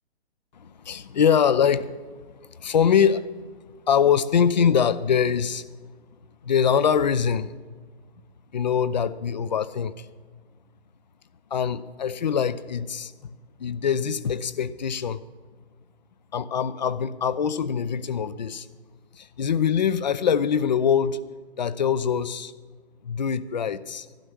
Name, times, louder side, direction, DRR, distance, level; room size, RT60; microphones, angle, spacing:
voice 1, 0.6-1.9 2.6-3.3 3.9-5.6 6.4-7.5 8.5-10.1 11.5-13.3 13.6-15.2 16.3-18.7 19.2-21.2 21.6-22.5 23.0-24.1, left 7 dB, 40° left, 16 dB, 0.6 m, -23 dB
14.0 x 12.0 x 6.1 m, 1.4 s
figure-of-eight pair, 140°, 33 cm